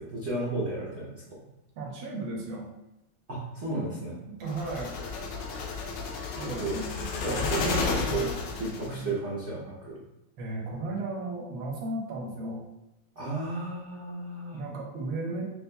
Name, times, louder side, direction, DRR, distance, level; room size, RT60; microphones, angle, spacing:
voice 1, 0.1-1.4 3.3-4.2 6.4-6.8 7.2-10.0 13.2-14.6, right 2 dB, 60° right, -8 dB, 0.7 m, -33 dB
voice 2, 1.8-2.7 4.3-4.9 6.4-8.3 8.8-9.2 10.4-12.6 14.5-15.5, right 2 dB, 75° right, -2 dB, 1.6 m, -35 dB
sound 1, 4.5-9.0, left 4 dB, 90° left, 1.6 m, -32 dB
6.7 x 2.4 x 2.2 m, 0.92 s
omnidirectional pair, 2.4 m